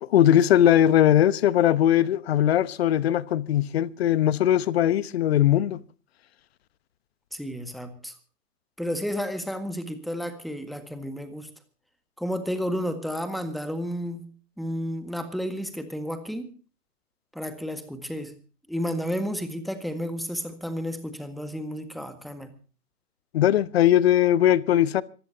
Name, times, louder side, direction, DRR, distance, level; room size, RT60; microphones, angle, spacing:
voice 1, 0.0-5.8 23.3-25.0, left 11 dB, 40° left, 1.0 m, -20 dB
voice 2, 7.3-8.1 8.8-11.5 12.2-14.2 14.6-16.5 17.4-18.3 18.7-22.5, equal, ahead, 1.7 m, -31 dB
26.0 x 15.0 x 2.8 m
figure-of-eight pair, 130°, 47 cm